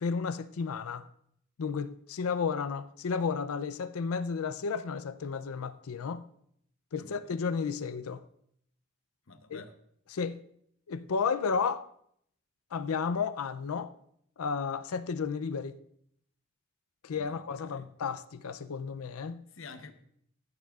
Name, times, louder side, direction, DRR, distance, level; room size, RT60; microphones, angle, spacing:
voice 1, 0.0-1.0 1.6-6.2 6.9-8.2 9.5-9.6 10.1-10.4 10.9-11.8 12.7-13.9 14.4-15.8 17.0-19.4, left 5 dB, 85° left, 0.5 m, -32 dB
voice 2, 7.0-7.3 9.3-9.7 17.1-17.9 19.5-19.9, left 4 dB, 65° left, 0.9 m, -49 dB
15.5 x 10.5 x 2.4 m
head